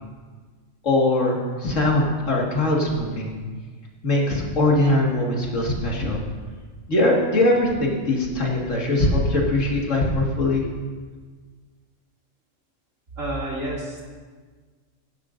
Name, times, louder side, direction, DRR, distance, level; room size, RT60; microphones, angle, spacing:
voice 1, 0.8-3.4 4.0-6.2 6.9-10.6, left 1 dB, 75° left, -2 dB, 2.2 m, -21 dB
voice 2, 13.1-14.0, right 1 dB, 80° right, -5 dB, 3.0 m, -29 dB
16.5 x 11.5 x 2.6 m, 1.5 s
omnidirectional pair, 1.3 m